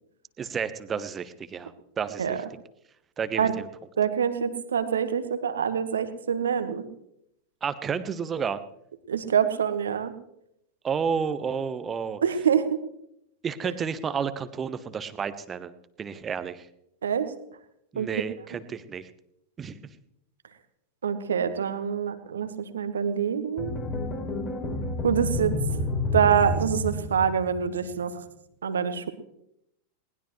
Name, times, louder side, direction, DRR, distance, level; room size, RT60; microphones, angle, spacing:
voice 1, 0.4-2.4 3.2-3.5 7.6-8.6 10.8-12.2 13.4-16.7 17.9-19.1 19.6-19.8, right 6 dB, 20° right, 13 dB, 1.1 m, -31 dB
voice 2, 4.0-6.9 9.1-10.1 12.2-12.7 13.6-13.7 17.0-17.3 17.9-18.1 21.0-23.8 25.0-25.6 26.1-28.1 28.6-29.1, right 7 dB, 70° right, 10 dB, 1.5 m, -25 dB
sound 1, 23.6-27.8, left 2 dB, 30° left, 3.6 m, -30 dB
20.5 x 19.5 x 3.2 m, 0.78 s
figure-of-eight pair, 90°, 0 cm